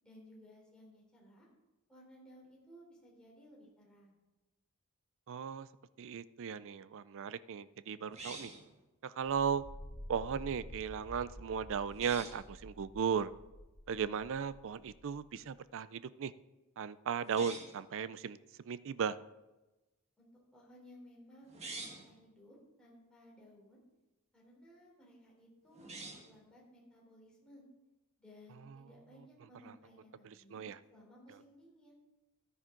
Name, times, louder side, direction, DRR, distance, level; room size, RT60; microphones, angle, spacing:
voice 1, 0.0-1.5 1.9-4.2 20.2-23.8 24.3-27.6 28.2-30.6 30.9-32.0, equal, 5° left, -4 dB, 3.5 m, -59 dB
voice 2, 5.3-5.7 6.0-8.5 9.0-9.6 10.1-13.3 13.9-16.3 16.8-18.4 18.6-19.2 30.2-30.8, right 7 dB, 60° right, 16 dB, 0.4 m, -36 dB
sound 1, 8.1-8.7 11.9-12.4 17.2-17.8 21.4-22.1 25.7-26.4, right 2 dB, 30° right, 1.6 m, -46 dB
sound 2, 9.5-15.3, equal, 45° left, 3.5 m, -51 dB
14.0 x 10.0 x 3.8 m, 1.1 s
head